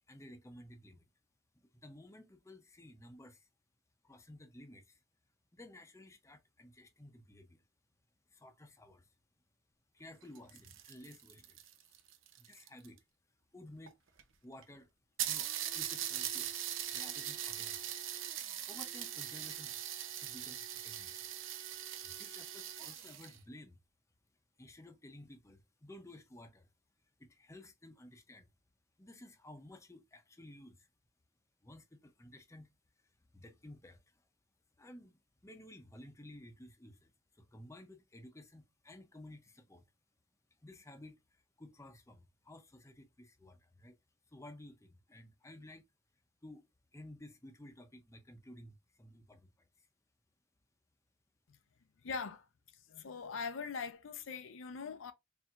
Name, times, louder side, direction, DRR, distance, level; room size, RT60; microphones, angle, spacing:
voice 1, 0.1-1.0 1.6-3.5 4.0-5.0 5.5-7.6 8.3-9.1 9.9-11.6 11.9-12.0 12.4-13.0 13.5-14.0 14.4-14.9 15.3-16.6 16.9-17.9 18.7-19.8 20.2-21.3 22.0-23.8 24.6-26.7 27.2-28.5 29.0-30.9 31.6-32.7 33.0-34.2 34.8-39.8 40.6-44.0 44.3-45.8 46.4-46.7 46.9-49.9, left 1 dB, 15° left, 0.6 m, -54 dB
sound 1, 10.2-13.0 13.9-14.0 14.2-14.3 14.6-14.7 15.2-23.4, right 11 dB, 65° right, 0.7 m, -41 dB
voice 2, 52.0-52.5 52.9-55.1, left 5 dB, 65° left, 0.5 m, -41 dB
4.4 x 3.4 x 2.5 m
head